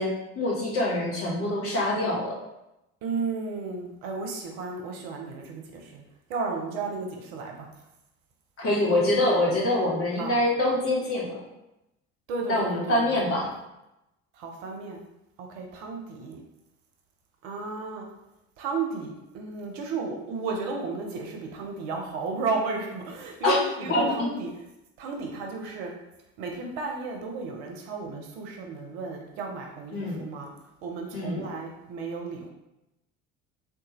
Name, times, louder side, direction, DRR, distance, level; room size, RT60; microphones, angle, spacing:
voice 1, 0.0-2.4 8.6-11.3 12.5-13.5 23.4-23.6 23.9-24.0 29.9-30.2 31.1-31.4, left 1 dB, 35° left, -4 dB, 1.2 m, -25 dB
voice 2, 3.0-6.0 6.3-7.7 10.2-10.4 12.3-13.5 14.3-15.0 15.4-16.4 17.4-18.1 18.6-24.6 25.0-25.9 26.4-30.5 30.8-32.5, right 4 dB, 50° right, 1 dB, 0.6 m, -33 dB
3.7 x 2.3 x 2.9 m, 0.91 s
figure-of-eight pair, 60°, 41 cm